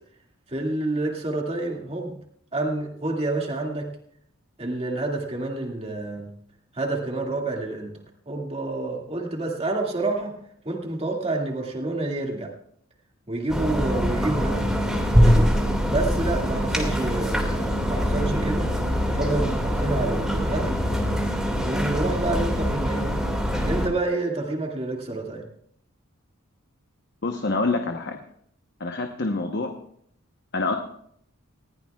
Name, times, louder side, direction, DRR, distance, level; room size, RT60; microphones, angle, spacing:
voice 1, 0.5-2.1 2.5-3.9 4.6-6.3 6.7-7.9 8.3-10.3 10.6-12.5 13.3-14.7 15.2-15.5 15.9-18.7 19.1-20.8 21.6-23.1 23.6-25.4, right 2 dB, 30° right, 0 dB, 2.2 m, -28 dB
sound 1, 13.5-23.9, equal, 5° right, 2.1 m, -23 dB
voice 2, 27.2-28.2 28.8-29.8 30.5-30.7, left 3 dB, 50° left, 4 dB, 1.0 m, -26 dB
20.0 x 15.5 x 2.4 m, 0.66 s
head